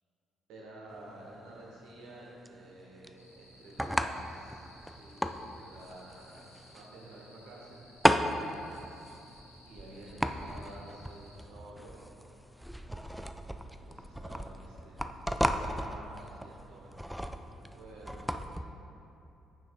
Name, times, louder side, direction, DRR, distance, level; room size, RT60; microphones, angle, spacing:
voice 1, 0.5-7.8 9.7-12.0 13.8-18.7, right 1 dB, 60° right, -4 dB, 1.3 m, -51 dB
sound 1, 0.9-18.6, equal, ahead, 0.3 m, -35 dB
sound 2, 3.2-11.4, left 1 dB, 90° left, 0.5 m, -59 dB
9.3 x 6.1 x 2.4 m, 2.8 s
figure-of-eight pair, 45°, 0 cm